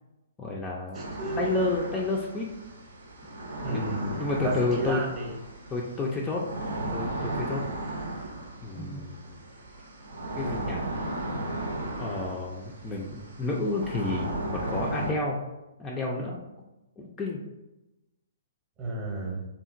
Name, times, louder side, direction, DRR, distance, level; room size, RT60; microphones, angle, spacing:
voice 1, 0.4-1.0 1.4-2.5 3.7-5.0 5.7-6.4 6.9-7.6 8.6-9.2 10.3-10.9 11.9-15.4 15.8-16.4 17.0-17.4, left 3 dB, 15° left, -2 dB, 0.4 m, -30 dB
voice 2, 0.9-1.4 3.6-5.3 8.7-9.1 18.8-19.4, right 2 dB, 25° right, -1 dB, 0.8 m, -33 dB
sound 1, 0.9-15.1, right 1 dB, 65° right, 0.6 m, -35 dB
2.8 x 2.4 x 2.4 m, 0.98 s
figure-of-eight pair, 125°, 0 cm